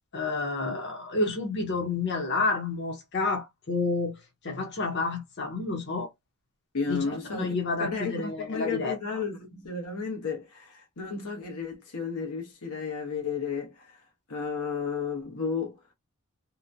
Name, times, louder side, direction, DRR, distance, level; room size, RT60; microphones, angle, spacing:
voice 1, 0.1-6.1 6.9-8.9, left 3 dB, 50° left, 0.9 m, -30 dB
voice 2, 6.7-7.5 7.8-14.0 14.3-15.8, left 5 dB, 90° left, 1.1 m, -33 dB
2.9 x 2.2 x 2.5 m
head